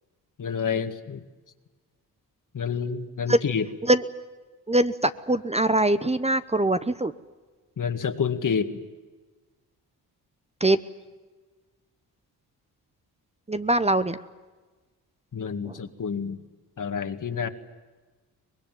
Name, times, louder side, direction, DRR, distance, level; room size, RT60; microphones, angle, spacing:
voice 1, 0.4-1.2 2.5-3.7 7.8-8.8 15.3-16.4 16.8-17.5, left 6 dB, 50° left, 8 dB, 2.1 m, -28 dB
voice 2, 4.7-7.1 10.6-10.8 13.5-14.2 15.7-15.8, right 1 dB, 15° right, 12 dB, 1.0 m, -22 dB
24.0 x 20.0 x 9.3 m, 1.3 s
cardioid pair, 60°, 39 cm